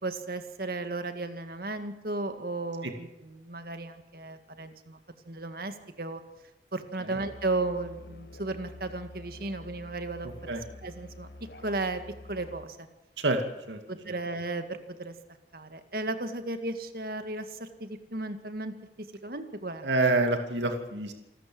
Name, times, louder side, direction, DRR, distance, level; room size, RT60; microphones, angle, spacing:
voice 1, 0.0-5.0 5.3-6.2 6.7-10.3 10.8-11.3 11.6-12.0 12.3-12.9 13.9-15.1 15.5-19.9, right 2 dB, 55° right, 8 dB, 2.0 m, -35 dB
Musical instrument, 7.1-12.7, left 1 dB, 65° left, 1.5 m, -47 dB
voice 2, 10.2-10.6 13.2-13.4 13.7-13.8 14.0-14.1 19.8-21.1, right 2 dB, 85° right, 5 dB, 2.4 m, -27 dB
28.0 x 13.5 x 7.8 m, 0.93 s
head